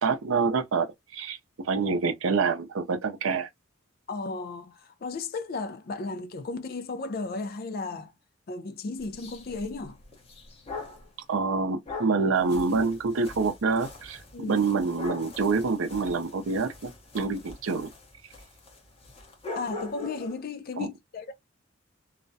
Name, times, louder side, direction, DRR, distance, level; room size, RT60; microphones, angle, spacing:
voice 1, 0.0-1.4 1.6-3.5 11.3-14.2 14.5-17.9 20.8-20.9, right 4 dB, 70° right, 0.5 m, -26 dB
voice 2, 4.1-8.1 8.5-10.0 14.3-14.6 19.6-21.3, left 3 dB, 45° left, 0.4 m, -34 dB
sound 1, 9.0-11.1 11.9-20.4, left 3 dB, 30° left, 0.8 m, -43 dB
2.3 x 2.1 x 2.6 m
head